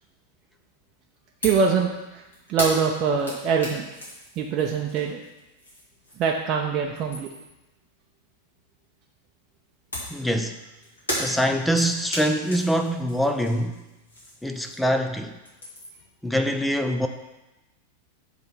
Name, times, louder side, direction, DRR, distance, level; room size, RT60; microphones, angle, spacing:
sound 1, 1.4-1.7 2.0-6.5 6.8-7.6 9.9-15.0 15.3-16.1, equal, 70° left, 2.6 m, -35 dB
voice 1, 1.4-3.9 4.4-5.2 6.2-7.3, right 6 dB, 35° right, 0 dB, 0.7 m, -24 dB
voice 2, 10.1-10.6 11.2-13.8 14.4-15.4 16.2-17.1, equal, 5° left, 5 dB, 0.5 m, -24 dB
7.6 x 3.9 x 6.0 m, 1.0 s
figure-of-eight pair, 90°, 0 cm